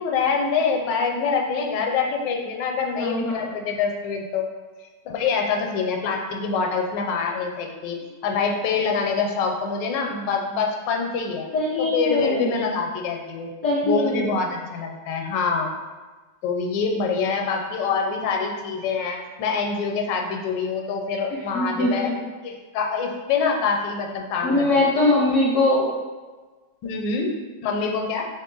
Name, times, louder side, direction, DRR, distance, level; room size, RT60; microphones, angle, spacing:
voice 1, 0.0-4.5 5.0-11.5 11.8-13.5 13.8-15.7 16.4-22.1 22.4-24.7 26.8-28.3, left 5 dB, 80° left, 2 dB, 1.2 m, -25 dB
voice 2, 3.0-3.5 11.5-12.6 13.6-14.3 21.3-22.1 24.4-25.9, left 2 dB, 65° left, -5 dB, 0.8 m, -22 dB
3.0 x 2.8 x 3.7 m, 1.3 s
omnidirectional pair, 1.9 m